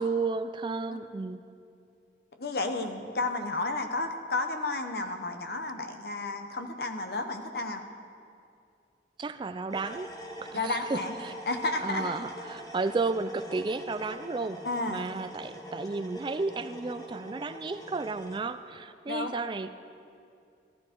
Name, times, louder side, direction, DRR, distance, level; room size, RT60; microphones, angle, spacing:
voice 1, 0.0-1.4 9.2-10.1 10.5-11.3 11.8-19.7, right 3 dB, 25° right, 11 dB, 0.3 m, -33 dB
voice 2, 2.4-7.8 10.5-11.1 11.5-12.1 14.6-15.0 19.1-19.4, left 2 dB, 60° left, 6 dB, 1.0 m, -32 dB
sound 1, 9.7-18.4, equal, 20° left, 1.0 m, -44 dB
15.5 x 12.5 x 4.5 m, 2.5 s
head